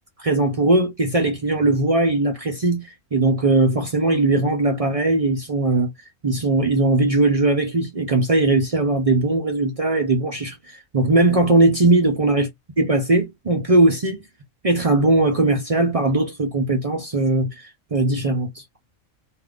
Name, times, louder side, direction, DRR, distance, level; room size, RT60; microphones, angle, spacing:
voice 1, 0.2-2.8 3.1-5.9 6.2-12.5 12.8-14.2 14.6-18.6, right 2 dB, 45° right, 0.4 m, -19 dB
2.5 x 2.4 x 3.5 m
omnidirectional pair, 1.5 m